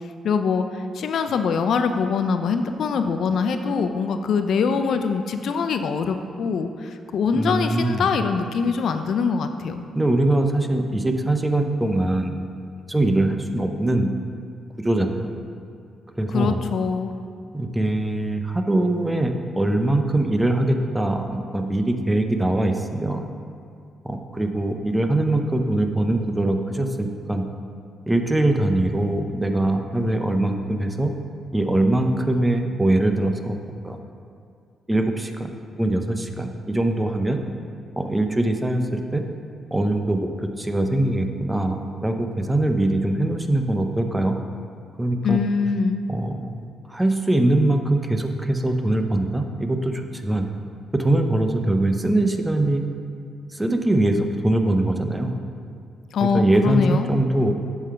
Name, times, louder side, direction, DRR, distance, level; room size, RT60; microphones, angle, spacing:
voice 1, 0.2-9.8 16.3-17.1 45.2-46.0 56.1-57.1, left 5 dB, 70° left, 8 dB, 0.4 m, -23 dB
voice 2, 7.3-8.0 9.9-12.5 12.9-14.1 14.8-15.3 16.2-16.6 17.5-23.3 24.0-27.4 28.1-31.1 31.5-33.6 33.8-34.0 34.9-37.4 38.0-39.2 39.7-44.4 45.0-45.4 46.1-46.5 46.9-50.5 50.9-52.8 53.5-55.3 56.2-57.5, right 1 dB, 10° right, 5 dB, 0.6 m, -22 dB
8.0 x 3.9 x 5.6 m, 2.4 s
cardioid pair, 90°, 0 cm